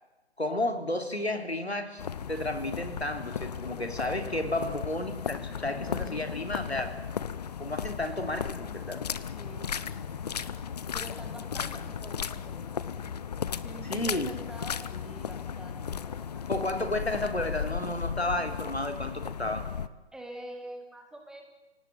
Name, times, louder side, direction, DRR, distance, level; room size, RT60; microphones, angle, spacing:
voice 1, 0.4-7.0 7.6-9.0 13.9-14.3 16.5-19.7, left 1 dB, 85° left, 6 dB, 3.7 m, -32 dB
sound 1, 2.0-19.9, left 7 dB, 40° left, 0.9 m, -35 dB
voice 2, 4.4-4.7 9.4-10.6 10.9-13.1 13.6-16.6 20.1-21.5, right 1 dB, ahead, 3 dB, 2.1 m, -46 dB
30.0 x 18.5 x 9.2 m, 1.1 s
figure-of-eight pair, 135°, 31 cm